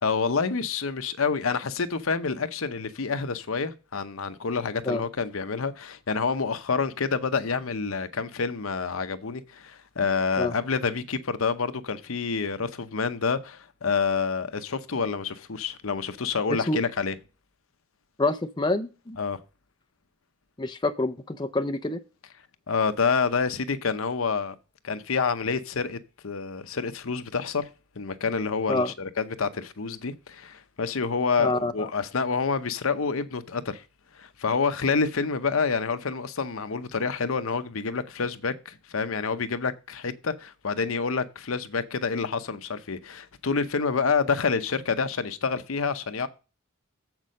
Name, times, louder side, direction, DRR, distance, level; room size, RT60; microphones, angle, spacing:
voice 1, 0.0-17.1 19.2-19.4 22.7-24.5 24.8-27.7 28.0-33.8 34.1-46.3, left 5 dB, 70° left, 0.8 m, -28 dB
voice 2, 18.2-19.2 20.6-22.0 28.7-28.9 31.4-31.9, left 2 dB, 20° left, 0.5 m, -27 dB
7.5 x 6.0 x 5.2 m
head